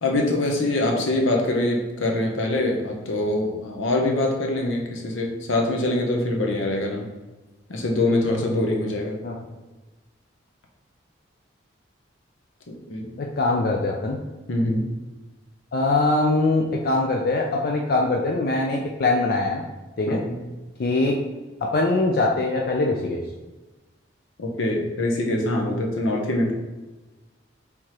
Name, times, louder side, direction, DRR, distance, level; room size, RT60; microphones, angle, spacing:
voice 1, 0.0-7.1 7.7-9.2 12.7-13.1 14.5-14.8 20.1-20.4 24.4-26.5, left 1 dB, 80° left, 1 dB, 0.8 m, -24 dB
voice 2, 13.2-14.2 15.7-19.6 20.0-20.2 20.8-21.2 21.6-23.2, left 2 dB, 50° left, 0 dB, 0.4 m, -22 dB
4.7 x 3.5 x 2.9 m, 1.2 s
head